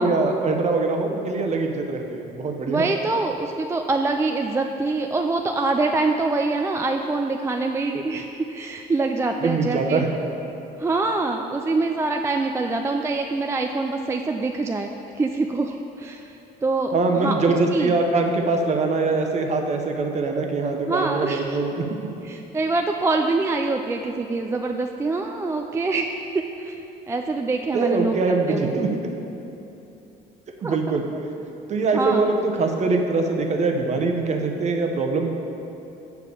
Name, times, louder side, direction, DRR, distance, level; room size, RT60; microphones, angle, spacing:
voice 1, 0.0-2.8 9.4-10.1 16.9-21.9 27.7-28.9 30.6-31.0 31.7-35.3, right 3 dB, 40° right, 3 dB, 0.9 m, -23 dB
voice 2, 2.7-10.0 10.8-14.9 15.1-16.4 16.6-17.3 17.7-18.0 20.9-21.6 22.2-26.8 27.1-28.7 30.6-30.8 31.9-32.2, right 3 dB, 15° right, 3 dB, 0.3 m, -25 dB
7.0 x 4.7 x 6.8 m, 2.9 s
cardioid pair, 110°, 17 cm